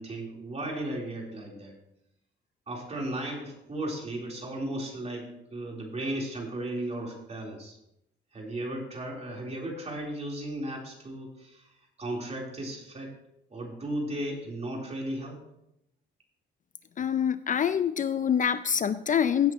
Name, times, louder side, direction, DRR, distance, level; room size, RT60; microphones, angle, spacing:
voice 1, 0.0-1.7 2.7-7.8 8.3-11.7 12.0-13.1 13.5-15.4, right 1 dB, 35° right, -2 dB, 3.8 m, -35 dB
voice 2, 17.0-19.5, left 8 dB, 40° left, 13 dB, 0.4 m, -25 dB
15.5 x 7.9 x 3.1 m, 0.81 s
cardioid pair, 90°, 20 cm